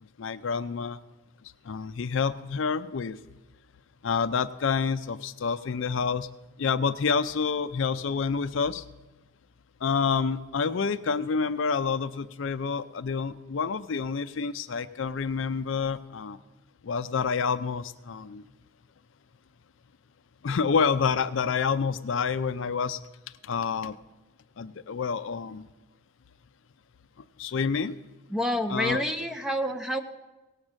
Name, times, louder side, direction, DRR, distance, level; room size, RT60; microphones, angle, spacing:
voice 1, 0.2-1.0 1.7-3.2 4.0-6.3 6.6-8.8 9.8-16.4 16.8-18.4 20.4-23.0 23.4-23.9 24.6-25.7 27.4-28.0 28.7-29.0, left 5 dB, 60° left, 13 dB, 0.4 m, -28 dB
voice 2, 28.3-30.0, equal, 5° right, 6 dB, 0.6 m, -28 dB
17.5 x 6.5 x 7.3 m, 1.1 s
head